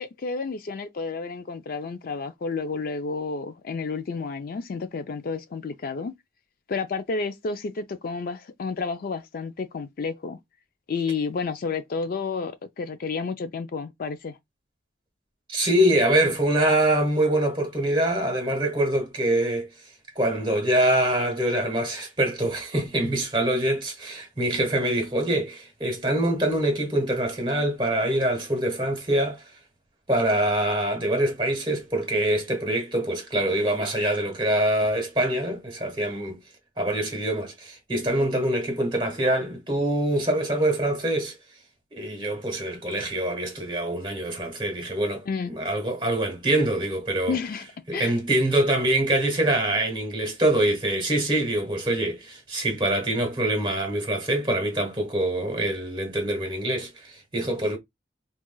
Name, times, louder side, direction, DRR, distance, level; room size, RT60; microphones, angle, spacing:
voice 1, 0.0-6.1 6.7-10.4 10.9-14.4 45.3-45.6 47.3-48.2, left 4 dB, 50° left, 0.4 m, -31 dB
voice 2, 15.5-19.7 20.1-29.4 30.1-36.4 36.8-41.4 41.9-47.4 47.9-57.8, right 1 dB, 25° right, 1.3 m, -24 dB
4.5 x 2.4 x 2.3 m
head